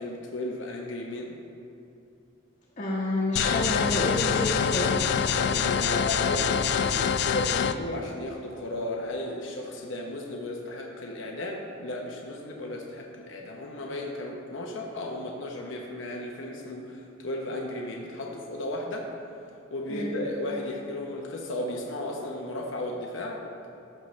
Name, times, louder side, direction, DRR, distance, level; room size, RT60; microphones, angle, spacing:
voice 1, 0.0-1.3 5.3-19.1 19.7-23.4, left 1 dB, 70° left, 0 dB, 0.9 m, -34 dB
voice 2, 2.8-5.0 19.9-20.1, left 1 dB, 40° left, -7 dB, 1.2 m, -29 dB
sound 1, 3.4-7.7, left 7 dB, 55° left, 0.3 m, -25 dB
14.5 x 6.5 x 3.2 m, 2.7 s
head